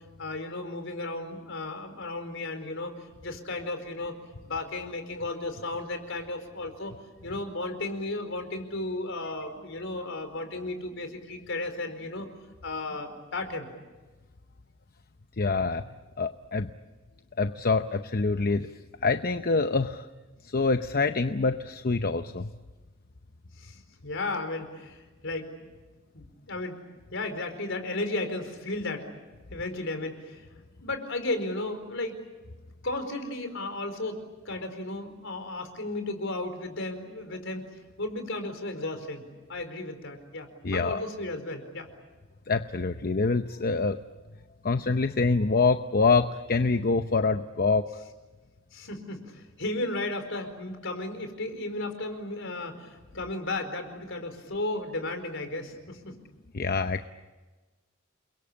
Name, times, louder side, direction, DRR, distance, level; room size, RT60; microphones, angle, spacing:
voice 1, 0.2-2.9 3.2-4.1 4.4-6.9 7.2-12.3 12.6-13.7 23.6-25.5 26.1-26.8 27.1-29.1 29.5-30.5 30.8-32.2 32.8-34.2 34.4-37.6 38.0-39.2 39.5-41.9 48.7-56.2, left 2 dB, 65° left, 7 dB, 4.6 m, -34 dB
voice 2, 15.4-15.8 16.2-16.7 17.4-18.7 19.0-20.1 20.5-22.5 40.6-41.0 42.5-44.0 44.6-47.9 56.5-57.1, left 4 dB, 45° left, 9 dB, 0.8 m, -25 dB
29.5 x 22.5 x 8.7 m, 1.2 s
head